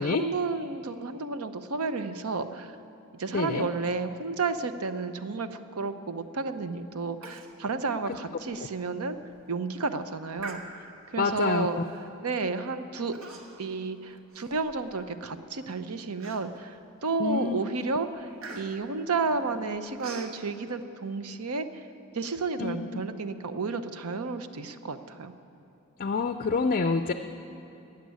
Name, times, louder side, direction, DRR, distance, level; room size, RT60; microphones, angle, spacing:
voice 1, 0.0-2.7 3.1-9.2 9.5-11.8 12.2-13.1 13.6-21.9 22.1-25.3, right 4 dB, 85° right, 10 dB, 0.7 m, -32 dB
voice 2, 3.3-3.7 8.1-8.2 11.2-11.8 17.2-17.6 22.6-23.0 26.0-27.1, left 4 dB, 40° left, 8 dB, 0.4 m, -27 dB
Human voice, 7.2-7.5 7.9-8.0 8.5-8.6 9.1-9.4 10.4-11.1 11.9-12.1 13.1-13.7 14.1-15.1 15.6-15.7 16.2-16.8 17.2-17.5 17.7-20.4, right 4 dB, 70° right, 1.4 m, -44 dB
14.5 x 8.2 x 9.5 m, 3.0 s
head